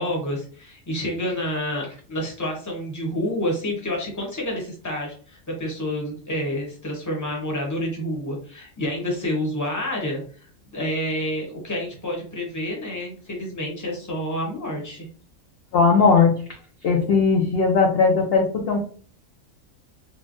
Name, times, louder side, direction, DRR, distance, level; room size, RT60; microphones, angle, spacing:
voice 1, 0.0-10.5 10.7-15.1, left 1 dB, 15° left, 0 dB, 0.8 m, -28 dB
voice 2, 15.7-16.3 16.8-18.8, left 5 dB, 60° left, 0 dB, 0.7 m, -18 dB
3.1 x 2.1 x 2.5 m, 0.42 s
omnidirectional pair, 1.4 m